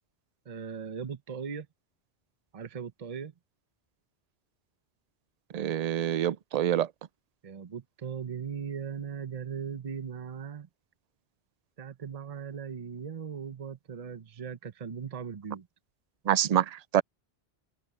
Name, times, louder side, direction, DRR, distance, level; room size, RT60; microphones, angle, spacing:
voice 1, 0.5-1.7 2.5-3.3 7.4-10.7 11.8-15.7, right 7 dB, 35° right, 0.8 m, -38 dB
voice 2, 5.5-6.9 16.3-17.0, right 10 dB, 55° right, 0.4 m, -26 dB
omnidirectional pair, 1.1 m